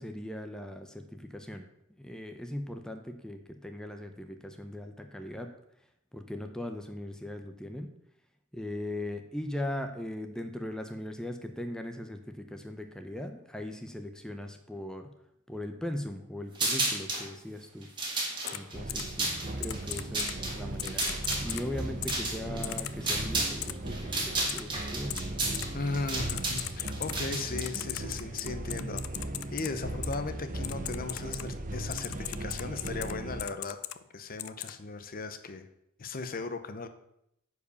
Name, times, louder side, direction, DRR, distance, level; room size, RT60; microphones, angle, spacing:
voice 1, 0.0-1.7 2.0-5.5 6.1-7.9 8.5-15.1 15.5-17.9 18.5-25.2, left 1 dB, 5° left, 6 dB, 0.7 m, -39 dB
sound 1, 16.5-17.3 17.8-23.6 23.9-27.6, right 2 dB, 25° right, 2.4 m, -32 dB
Typing, 18.5-18.6 18.9-19.0 19.6-20.3 20.8-21.6 22.0-22.1 22.6-22.9 23.6-23.7 24.5-24.6 25.1-25.2 25.5-25.6 26.3-27.1 27.6-29.7 30.0-30.2 30.6-31.4 31.9-33.1 33.4-33.9 34.4-34.7, left 15 dB, 85° left, 0.5 m, -37 dB
sound 2, 18.7-33.4, right 1 dB, 40° right, 0.8 m, -38 dB
voice 2, 25.7-29.0 29.5-33.8 34.1-35.7 36.0-36.9, left 3 dB, 45° left, 10 dB, 0.7 m, -37 dB
9.8 x 4.9 x 6.9 m, 0.78 s
head